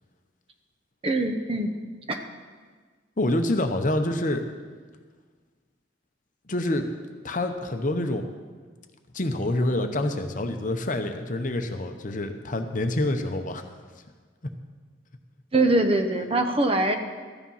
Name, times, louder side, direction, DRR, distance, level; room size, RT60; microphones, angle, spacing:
voice 1, 1.0-1.7 2.1-2.3 15.5-17.0, right 2 dB, 30° right, 6 dB, 0.8 m, -23 dB
voice 2, 3.2-4.4 6.5-6.9 7.2-8.3 9.1-13.6, left 1 dB, 45° left, 6 dB, 0.8 m, -27 dB
14.0 x 10.0 x 5.6 m, 1.5 s
head